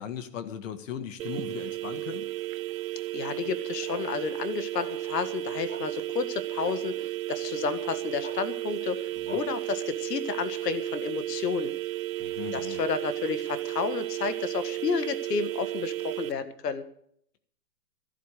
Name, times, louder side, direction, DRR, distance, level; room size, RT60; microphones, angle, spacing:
voice 1, 0.0-2.3 9.2-9.4 12.2-12.8, left 9 dB, 50° left, 11 dB, 1.7 m, -38 dB
sound 1, 1.2-16.3, right 15 dB, 55° right, 0.7 m, -34 dB
voice 2, 3.1-6.9 7.3-11.7 12.5-16.8, left 6 dB, 80° left, 12 dB, 1.9 m, -31 dB
sound 2, 3.9-4.0 4.7-4.9 5.7-5.8 6.6-6.8 8.2-8.3 9.3-9.4, left 1 dB, 15° left, 3.3 m, -41 dB
14.0 x 12.0 x 6.7 m, 0.67 s
hypercardioid pair, 150°, 48 cm